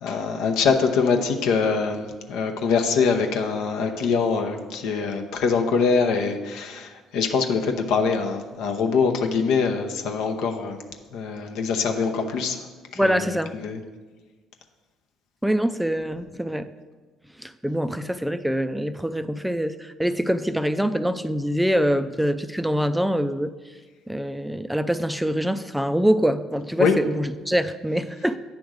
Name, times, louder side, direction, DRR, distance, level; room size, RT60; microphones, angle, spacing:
voice 1, 0.0-10.8 11.1-12.7 13.0-13.8 26.8-26.9, left 5 dB, 75° left, 0.8 m, -23 dB
voice 2, 13.0-13.6 15.4-16.7 17.4-23.5 24.1-28.4, equal, 5° right, 0.4 m, -24 dB
9.0 x 3.5 x 6.4 m
hypercardioid pair, 65°, 0 cm